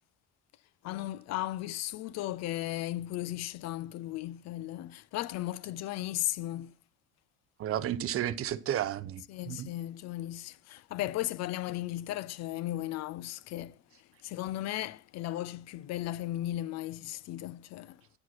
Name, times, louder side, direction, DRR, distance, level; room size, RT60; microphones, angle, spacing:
voice 1, 0.8-6.7 9.3-18.0, left 14 dB, 55° left, 0.4 m, -36 dB
voice 2, 7.6-9.7, right 11 dB, 45° right, 0.7 m, -32 dB
9.5 x 5.0 x 5.8 m
cardioid pair, 115°, 33 cm